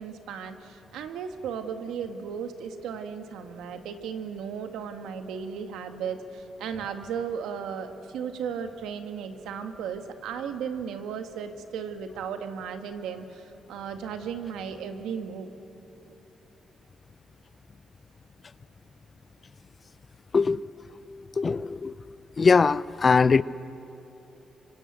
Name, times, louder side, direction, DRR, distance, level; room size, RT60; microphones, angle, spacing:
voice 1, 0.0-15.5, right 7 dB, 90° right, 1.6 m, -35 dB
voice 2, 21.4-21.9 22.4-23.4, left 5 dB, 40° left, 0.6 m, -21 dB
25.0 x 24.5 x 8.0 m
cardioid pair, 80°, 0 cm